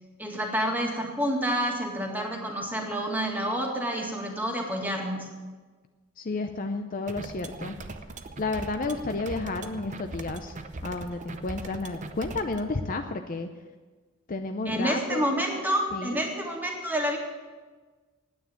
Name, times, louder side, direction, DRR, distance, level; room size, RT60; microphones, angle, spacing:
voice 1, 0.2-5.3 14.6-17.2, equal, 10° right, 0 dB, 1.9 m, -28 dB
voice 2, 6.2-7.8 8.4-10.6 10.8-13.5 14.3-15.3 15.9-16.2, left 3 dB, 40° left, 6 dB, 0.6 m, -31 dB
sound 1, 7.1-12.6, right 2 dB, 35° right, 0.7 m, -40 dB
9.6 x 9.1 x 8.8 m, 1.4 s
head